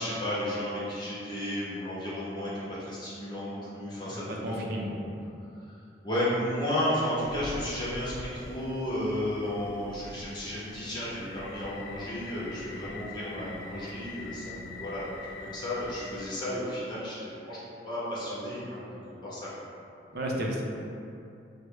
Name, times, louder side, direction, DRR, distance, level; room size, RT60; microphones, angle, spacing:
voice 1, 0.0-2.5 2.8-4.6 4.9-5.1 6.0-18.9 19.2-19.7, left 1 dB, 25° left, -9 dB, 0.9 m, -33 dB
voice 2, 4.1-5.3 20.1-20.6, equal, 60° right, -1 dB, 0.6 m, -33 dB
sound 1, 7.2-16.3, left 2 dB, 80° left, 0.4 m, -44 dB
6.2 x 2.1 x 3.2 m, 2.6 s
head